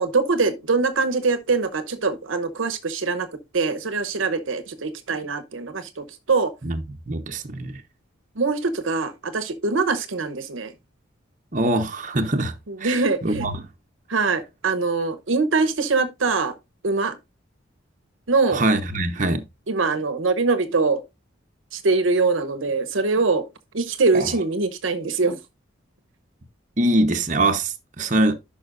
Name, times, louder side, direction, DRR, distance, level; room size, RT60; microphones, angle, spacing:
voice 1, 0.0-3.3 3.5-6.5 8.4-10.7 12.7-13.5 14.1-16.5 16.8-17.2 18.3-18.6 19.7-21.0 21.7-23.5 23.7-25.4, right 4 dB, 85° right, 0.9 m, -23 dB
voice 2, 6.6-7.8 11.5-13.6 18.5-19.4 24.1-24.3 26.8-28.3, right 1 dB, 40° right, 1.0 m, -23 dB
11.0 x 5.7 x 2.5 m
head